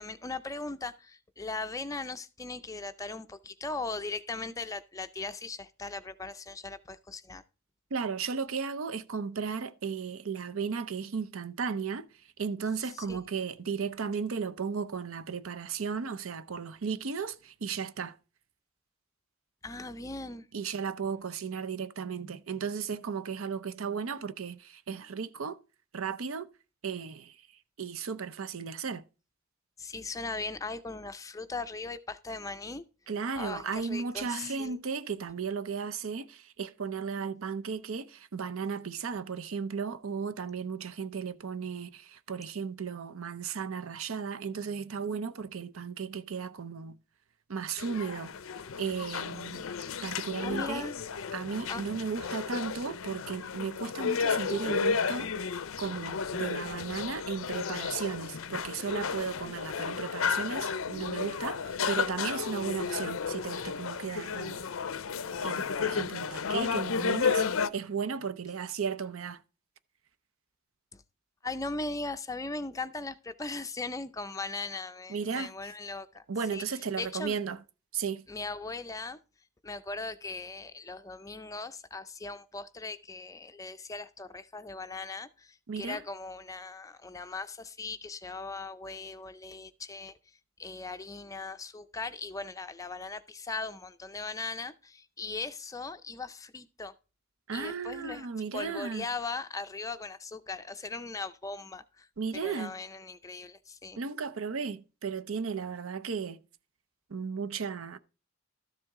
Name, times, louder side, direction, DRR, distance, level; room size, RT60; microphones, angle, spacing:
voice 1, 0.0-7.4 12.8-13.2 19.6-20.5 29.8-32.8 33.3-34.8 50.4-51.0 51.7-51.9 70.9-71.0 71.4-76.2 76.5-77.4 78.3-79.2 79.6-96.9 97.5-98.3 98.5-102.1 102.3-104.0, left 3 dB, 15° left, 0.4 m, -39 dB
voice 2, 7.9-12.1 12.4-18.2 20.5-25.6 25.9-26.5 26.8-27.4 27.8-29.0 33.1-47.0 47.5-48.3 48.8-49.7 50.0-50.9 51.3-55.3 55.8-64.7 65.4-69.4 75.1-75.5 76.3-77.6 77.9-78.2 85.7-86.0 97.5-99.1 102.2-102.8 104.0-106.4 107.1-108.0, right 6 dB, 70° right, 0.6 m, -35 dB
sound 1, 47.8-67.7, left 6 dB, 70° left, 0.5 m, -33 dB
13.0 x 7.5 x 3.6 m
head